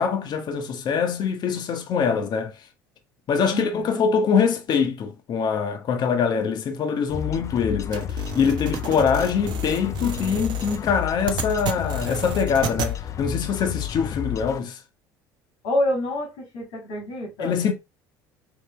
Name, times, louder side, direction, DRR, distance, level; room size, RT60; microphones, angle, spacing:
voice 1, 0.0-2.6 3.3-14.8 17.4-17.7, left 6 dB, 50° left, 1.1 m, -24 dB
voice 2, 3.5-4.0 15.6-16.3 16.5-17.5, left 1 dB, 80° left, 2.3 m, -27 dB
sound 1, 7.1-14.6, left 10 dB, 35° left, 0.4 m, -31 dB
sound 2, 7.9-12.9, right 7 dB, 50° right, 0.9 m, -33 dB
5.0 x 3.2 x 3.3 m
hypercardioid pair, 75°, 9 cm